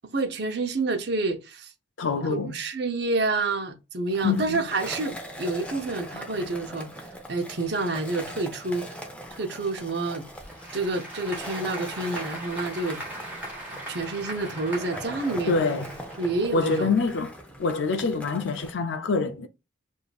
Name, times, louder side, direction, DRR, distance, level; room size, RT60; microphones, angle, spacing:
voice 1, 0.1-1.7 2.3-6.9 7.3-9.0 9.3-10.3 10.7-13.0 13.9-15.5 16.2-16.9, right 3 dB, 55° right, 0.8 m, -28 dB
voice 2, 2.0-2.5 4.2-4.6 15.5-15.9 16.5-17.3 17.6-19.5, left 4 dB, 70° left, 0.5 m, -25 dB
Skateboard, 4.1-18.7, equal, 5° left, 0.6 m, -41 dB
Applause / Crowd, 10.2-16.8, right 1 dB, 10° right, 1.5 m, -40 dB
6.8 x 2.6 x 2.4 m
head